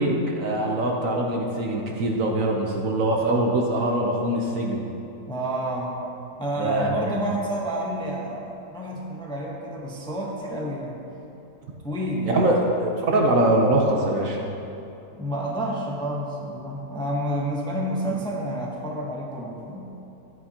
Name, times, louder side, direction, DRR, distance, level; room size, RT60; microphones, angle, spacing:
voice 1, 0.0-4.8 6.6-7.3 12.3-14.4, right 1 dB, 55° right, 0 dB, 1.1 m, -23 dB
voice 2, 5.3-6.0 6.4-11.0 11.8-12.5 15.2-19.9, right 1 dB, 5° left, -3 dB, 0.7 m, -29 dB
12.0 x 9.4 x 2.9 m, 2.9 s
omnidirectional pair, 1.8 m